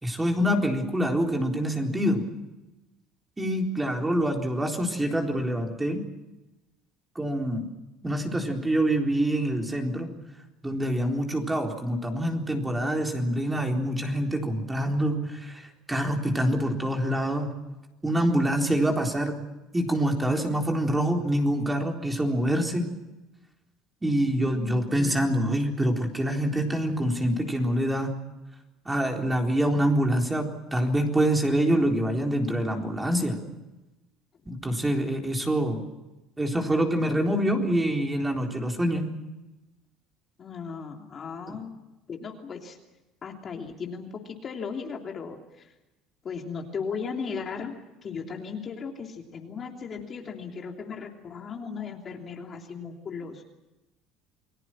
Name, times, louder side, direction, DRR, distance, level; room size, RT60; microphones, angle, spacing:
voice 1, 0.0-2.2 3.4-6.0 7.2-7.7 8.0-10.1 10.6-17.5 18.0-19.4 19.7-22.9 24.0-28.2 28.9-33.4 34.5-35.8 36.4-39.0 41.5-41.6, right 1 dB, 10° right, 2 dB, 3.9 m, -26 dB
voice 2, 24.5-25.3 40.4-41.7 42.1-42.8 43.2-45.7 46.2-47.8 48.0-53.4, left 5 dB, 35° left, 2 dB, 3.1 m, -36 dB
29.5 x 20.5 x 6.2 m, 1.0 s
cardioid pair, 130°, 0 cm